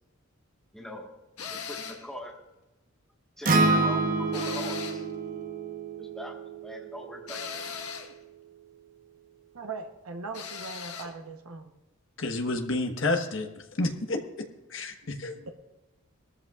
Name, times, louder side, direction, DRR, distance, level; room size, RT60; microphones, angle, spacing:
voice 1, 0.7-1.2 1.5-2.3 3.4-5.0 6.0-7.7, equal, ahead, -1 dB, 1.5 m, -41 dB
sound 1, 1.4-2.1 4.3-5.1 7.3-8.1 10.3-11.1, left 6 dB, 85° left, 1.5 m, -38 dB
Acoustic guitar, 3.4-7.7, right 2 dB, 40° right, 1.0 m, -28 dB
voice 2, 9.5-11.7 15.0-15.5, right 4 dB, 80° right, 4 dB, 1.0 m, -40 dB
voice 3, 12.2-13.5 13.8-14.2 14.7-15.3, left 2 dB, 60° left, 4 dB, 1.3 m, -29 dB
19.5 x 13.5 x 2.4 m, 1.0 s
head